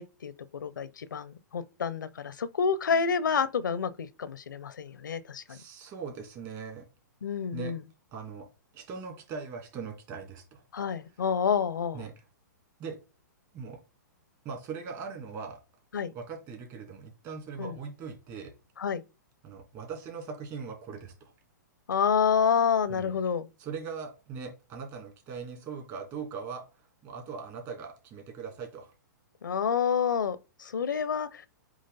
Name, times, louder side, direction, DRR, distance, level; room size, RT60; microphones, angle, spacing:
voice 1, 0.0-5.6 7.2-7.8 10.7-12.0 15.9-16.1 17.6-17.7 18.8-19.0 21.9-23.5 29.4-31.4, left 6 dB, 80° left, 0.6 m, -28 dB
voice 2, 5.5-6.8 7.5-7.7 8.1-8.5 8.7-10.6 11.9-12.1 12.8-13.0 13.5-13.8 14.4-15.6 16.1-18.5 19.4-21.3 22.9-23.2 23.6-26.6 27.0-28.9, right 5 dB, 35° right, 2.6 m, -40 dB
8.0 x 3.1 x 4.1 m
hypercardioid pair, 120°, 10 cm